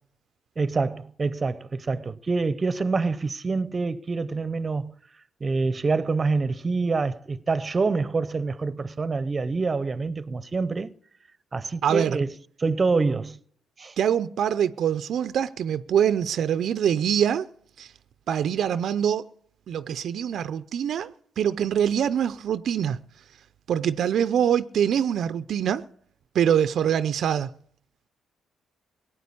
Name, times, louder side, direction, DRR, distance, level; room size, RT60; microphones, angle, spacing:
voice 1, 0.6-5.0 5.4-10.9 11.5-12.3 12.6-13.4 13.8-13.9, right 4 dB, 30° right, 0.8 m, -26 dB
voice 2, 11.8-12.2 14.0-17.5 17.8-17.9 18.3-19.3 19.7-23.0 23.7-25.8 26.3-27.5, right 9 dB, 65° right, 0.5 m, -24 dB
18.0 x 9.1 x 8.5 m
cardioid pair, 90°, 0 cm